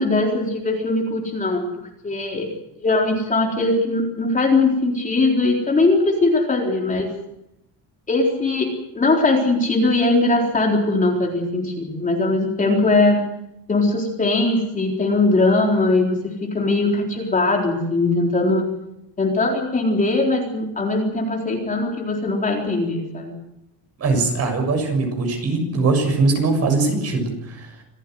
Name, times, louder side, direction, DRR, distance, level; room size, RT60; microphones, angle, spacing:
voice 1, 0.0-1.6 2.0-2.5 2.8-7.1 8.1-8.7 8.9-13.2 13.7-18.7 19.2-23.3, left 2 dB, 20° left, 0 dB, 4.1 m, -20 dB
voice 2, 24.0-27.8, right 3 dB, 35° right, 5 dB, 6.8 m, -21 dB
27.0 x 15.5 x 7.9 m, 0.84 s
cardioid pair, 160°, 41 cm